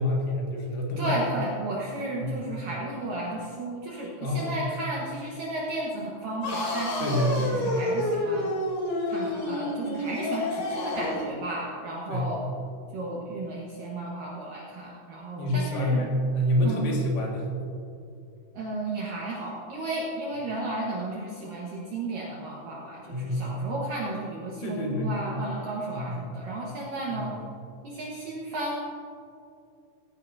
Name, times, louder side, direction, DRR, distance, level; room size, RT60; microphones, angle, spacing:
voice 1, 0.0-1.2 2.2-2.4 4.2-4.6 7.0-7.6 12.1-12.3 15.4-17.5 23.1-23.5 24.6-25.2 25.9-26.2 27.1-27.3, left 1 dB, 75° left, -1 dB, 4.3 m, -27 dB
voice 2, 1.0-8.5 9.1-12.4 12.9-16.1 16.6-16.9 18.5-27.3 27.8-28.8, right 2 dB, 70° right, -4 dB, 2.1 m, -33 dB
sound 1, 6.4-11.3, left 1 dB, 60° left, 2.6 m, -29 dB
15.5 x 15.0 x 2.7 m, 2.5 s
omnidirectional pair, 5.7 m